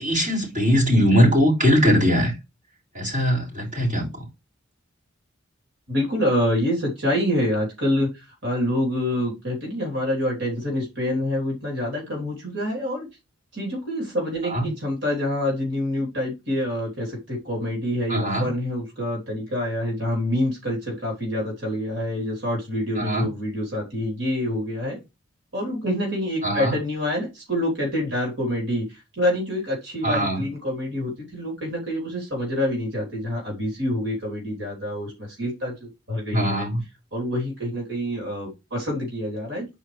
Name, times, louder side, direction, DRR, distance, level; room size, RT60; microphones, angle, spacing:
voice 1, 0.0-2.3 2.9-4.1 14.5-14.7 18.1-18.5 23.0-23.3 26.4-26.8 30.0-30.4 36.3-36.8, equal, 40° right, 4.8 m, -20 dB
voice 2, 5.9-13.1 13.5-25.0 25.5-36.7 37.1-39.7, left 1 dB, 65° right, 3.7 m, -26 dB
9.8 x 4.6 x 3.3 m
head